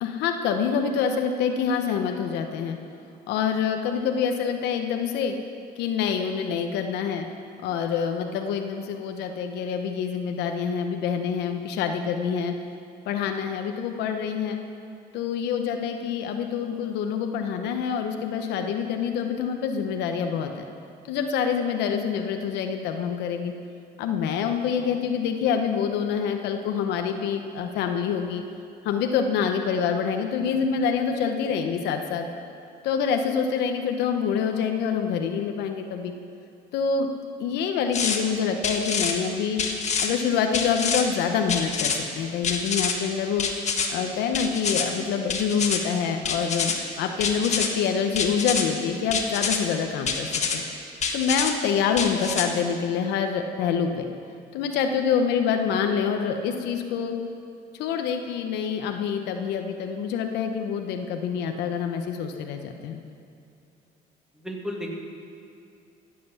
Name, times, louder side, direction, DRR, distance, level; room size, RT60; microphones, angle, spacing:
voice 1, 0.0-2.8 3.3-5.3 5.8-7.3 7.6-12.5 13.1-14.6 15.1-20.6 21.1-23.5 24.0-28.4 28.8-32.3 32.8-36.1 36.7-37.1 37.4-39.6 40.0-43.5 43.9-50.6 51.1-54.1 54.5-57.2 57.8-63.0, left 7 dB, 85° left, 5 dB, 1.0 m, -26 dB
sound 1, 37.9-38.2 38.6-39.1 39.6-40.1 40.5-41.0 41.5-42.0 42.4-42.9 43.4-43.9 44.3-44.9 45.3-45.8 46.3-46.8 47.2-47.7 48.2-48.6 49.1-49.6 50.1-50.6 51.0-51.5 52.0-52.5, left 5 dB, 40° left, 1.5 m, -26 dB
voice 2, 64.4-64.9, equal, 5° right, -1 dB, 2.2 m, -33 dB
15.0 x 7.8 x 7.0 m, 2.5 s
cardioid pair, 110°, 17 cm